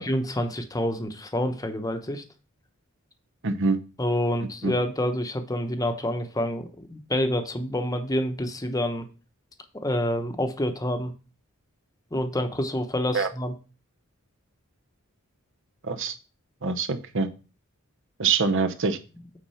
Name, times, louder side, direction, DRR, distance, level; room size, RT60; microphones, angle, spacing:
voice 1, 0.0-2.2 4.0-9.1 9.8-11.1 12.1-13.5, left 1 dB, 15° left, 7 dB, 0.9 m, -27 dB
voice 2, 3.4-3.8 4.6-4.7 13.1-13.3 15.8-16.1 16.6-17.3 18.2-19.0, right 4 dB, 60° right, 7 dB, 0.9 m, -24 dB
8.7 x 4.0 x 5.6 m, 0.33 s
head